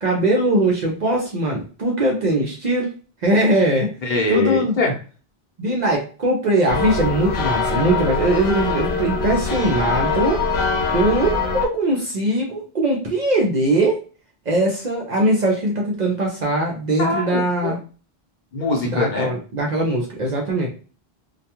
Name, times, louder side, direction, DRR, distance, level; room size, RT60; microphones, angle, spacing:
voice 1, 0.0-2.9 3.2-3.9 4.3-4.8 5.6-10.6 10.9-14.0 14.5-17.8 18.8-20.7, right 1 dB, 50° right, -1 dB, 0.6 m, -21 dB
voice 2, 4.0-4.9 17.0-17.8 18.5-19.3, left 3 dB, 50° left, -1 dB, 0.8 m, -22 dB
sound 1, 6.7-11.7, left 4 dB, 80° left, 0.9 m, -23 dB
2.2 x 2.2 x 2.8 m, 0.36 s
omnidirectional pair, 1.1 m